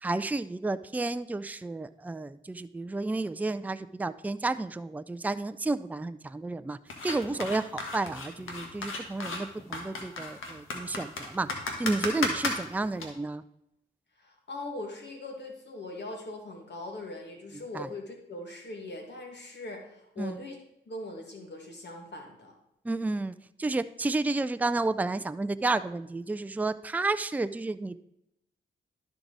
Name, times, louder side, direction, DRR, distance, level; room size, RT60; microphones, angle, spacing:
voice 1, 0.0-6.8 7.0-11.5 11.8-13.4 17.7-17.9 20.2-20.4 22.8-28.0, right 2 dB, 10° right, 13 dB, 0.4 m, -31 dB
sound 1, 6.9-13.1, left 3 dB, 80° left, 1.4 m, -34 dB
voice 2, 14.2-20.6 20.9-22.5, left 2 dB, 60° left, 2 dB, 2.0 m, -41 dB
12.0 x 4.7 x 4.0 m, 0.79 s
cardioid pair, 50°, 20 cm